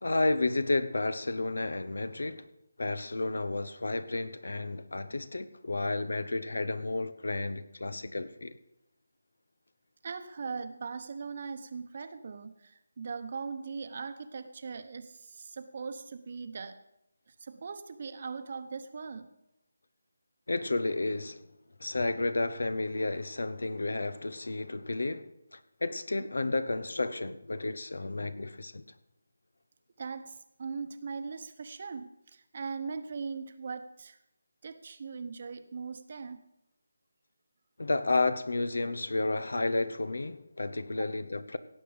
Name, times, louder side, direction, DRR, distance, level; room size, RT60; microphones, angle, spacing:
voice 1, 0.0-2.5 2.8-8.6 20.5-21.5 21.8-28.8 37.8-41.6, left 2 dB, 75° left, 0.9 m, -31 dB
voice 2, 10.0-16.8 17.3-19.3 30.0-34.2 34.6-36.4 41.0-41.1, right 5 dB, 45° right, 1.0 m, -40 dB
17.0 x 7.5 x 5.1 m
figure-of-eight pair, 160°, 0 cm